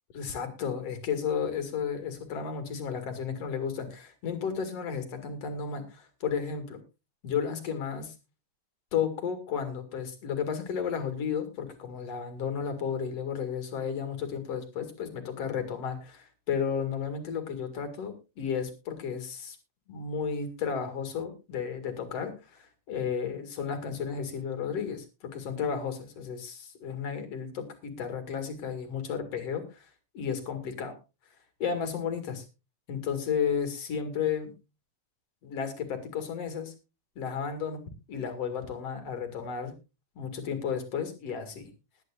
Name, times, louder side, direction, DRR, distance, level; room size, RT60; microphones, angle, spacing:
voice 1, 0.1-6.8 7.2-8.1 8.9-19.6 19.9-29.9 30.1-31.0 31.6-32.4 32.9-34.5 35.4-36.7 37.2-39.7 40.2-41.7, left 7 dB, 60° left, 7 dB, 3.1 m, -33 dB
20.5 x 9.6 x 2.5 m, 0.28 s
omnidirectional pair, 3.3 m